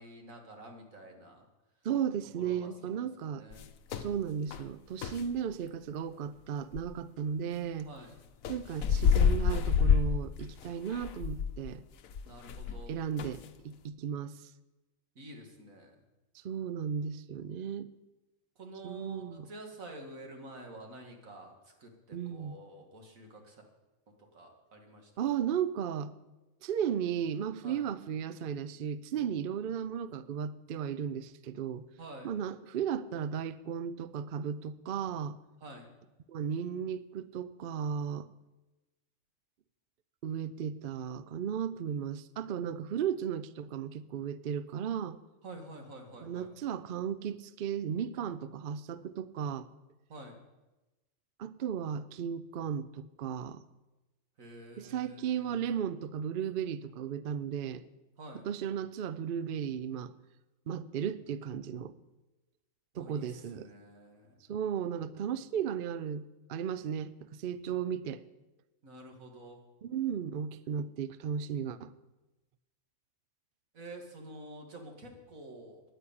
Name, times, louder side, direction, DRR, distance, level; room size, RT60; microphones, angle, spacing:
voice 1, 0.0-1.5 2.4-3.7 4.0-4.2 7.8-8.1 12.2-13.0 15.2-16.0 18.6-23.6 24.3-25.3 27.6-27.8 32.0-32.3 35.6-35.9 45.4-46.5 50.1-50.4 54.4-55.6 58.2-58.5 62.9-64.4 68.8-69.6 73.7-75.8, right 1 dB, 80° right, 2 dB, 2.3 m, -49 dB
voice 2, 1.8-3.4 3.9-7.9 8.5-11.8 12.9-14.5 16.4-17.9 18.8-19.5 22.1-22.5 25.2-26.1 26.6-31.8 32.2-35.4 36.3-38.3 40.2-45.2 46.2-49.7 51.4-53.6 54.8-57.8 58.4-60.1 60.7-61.9 62.9-63.7 64.5-68.2 69.8-71.9, right 8 dB, 60° right, 15 dB, 0.6 m, -35 dB
sound 1, 3.5-4.1 4.5-4.7 5.0-5.3 6.7-6.9 8.4-12.9 13.2-13.5, left 6 dB, 85° left, 1.1 m, -28 dB
10.0 x 9.4 x 8.6 m, 1.1 s
omnidirectional pair, 1.4 m